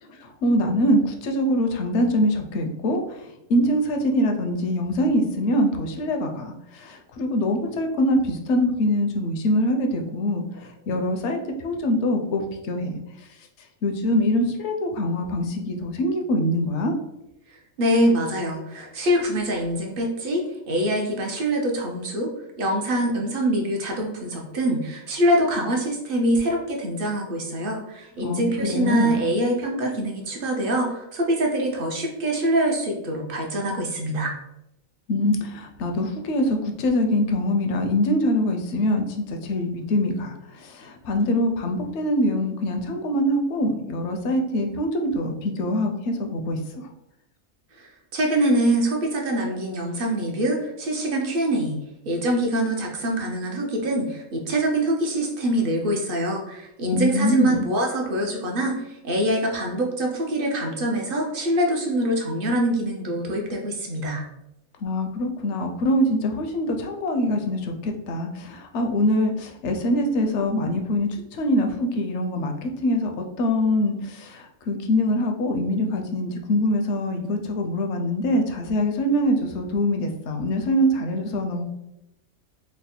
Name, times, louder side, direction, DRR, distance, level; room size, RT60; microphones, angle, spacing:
voice 1, 0.0-12.9 13.8-17.0 28.2-29.2 35.1-46.9 56.9-57.7 64.8-81.7, left 1 dB, 70° left, 4 dB, 0.8 m, -24 dB
voice 2, 17.5-22.3 22.6-34.3 47.7-51.8 52.0-64.2, right 1 dB, 55° right, 1 dB, 0.7 m, -24 dB
3.3 x 2.1 x 4.1 m, 0.85 s
omnidirectional pair, 1.3 m